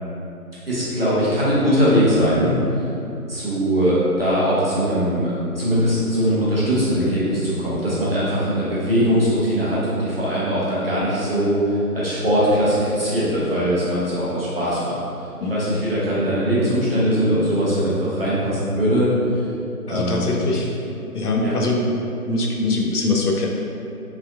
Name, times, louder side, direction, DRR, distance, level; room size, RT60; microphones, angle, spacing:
voice 1, 0.7-2.5 3.3-11.6 11.9-15.0 15.5-19.1 19.9-20.6 21.4-21.6, equal, 40° right, -9 dB, 0.7 m, -21 dB
voice 2, 19.9-20.6 21.1-21.8 22.3-23.5, left 2 dB, 80° left, -1 dB, 0.6 m, -22 dB
3.2 x 2.5 x 2.4 m, 2.7 s
figure-of-eight pair, 155°, 45 cm